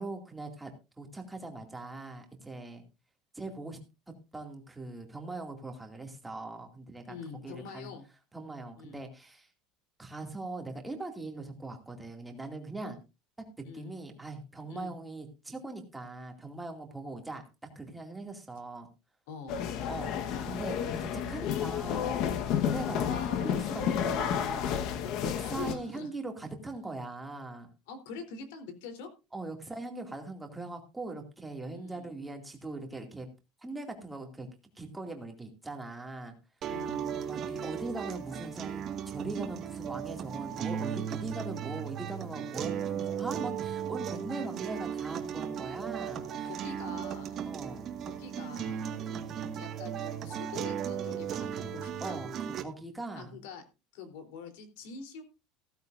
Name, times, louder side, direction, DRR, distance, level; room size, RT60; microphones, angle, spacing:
voice 1, 0.0-2.8 3.3-3.8 4.3-7.1 7.4-7.9 8.3-9.5 10.0-13.0 13.6-17.4 17.8-18.9 19.9-22.2 22.5-24.8 25.2-27.7 29.3-33.3 33.6-34.5 34.8-36.3 37.3-46.5 47.5-47.9 49.0-49.2 52.0-53.4, right 2 dB, 5° right, 3 dB, 2.3 m, -41 dB
voice 2, 7.1-8.0 8.8-9.0 13.6-13.9 14.7-15.0 19.3-19.6 25.6-26.1 27.9-29.1 31.7-32.1 36.7-37.1 46.4-47.4 48.1-48.9 49.6-52.1 53.1-53.6 53.9-55.2, left 5 dB, 85° left, 7 dB, 3.6 m, -45 dB
sound 1, 19.5-25.7, left 8 dB, 50° left, 1.3 m, -31 dB
sound 2, 36.6-52.6, right 8 dB, 30° right, 1.8 m, -36 dB
15.5 x 14.0 x 2.6 m, 0.28 s
cardioid pair, 170°, 0 cm